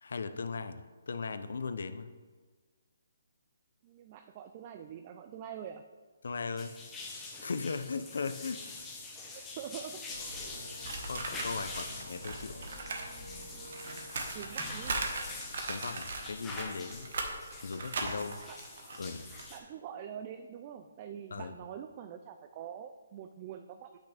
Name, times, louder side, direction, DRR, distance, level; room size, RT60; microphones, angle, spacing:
voice 1, 0.0-2.1 6.2-6.7 7.4-8.6 10.7-12.7 15.7-17.1 17.6-18.4 19.0-19.3 21.3-21.6, left 4 dB, 70° left, 11 dB, 0.5 m, -38 dB
voice 2, 3.8-5.9 9.3-10.0 14.3-15.0 18.5-18.7 19.5-24.0, right 9 dB, 25° right, 7 dB, 0.3 m, -45 dB
sound 1, 6.6-19.6, left 3 dB, 10° left, 0.9 m, -45 dB
sound 2, 10.1-15.3, equal, 75° right, 2.1 m, -49 dB
sound 3, 10.8-13.1 13.3-19.4, right 3 dB, 55° right, 1.1 m, -39 dB
8.2 x 6.0 x 3.4 m, 1.4 s
hypercardioid pair, 165°, 0 cm